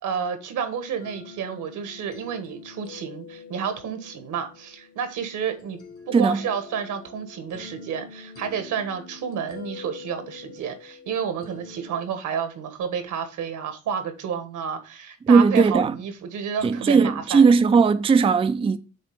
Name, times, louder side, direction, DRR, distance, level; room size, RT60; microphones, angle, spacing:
voice 1, 0.0-5.8 6.1-17.5, right 7 dB, 80° right, 1.3 m, -30 dB
sound 1, 1.0-12.1, left 5 dB, 50° left, 1.7 m, -45 dB
voice 2, 15.3-15.9 16.6-18.8, right 5 dB, 20° right, 0.4 m, -18 dB
7.5 x 2.9 x 5.0 m
cardioid pair, 90°, 30 cm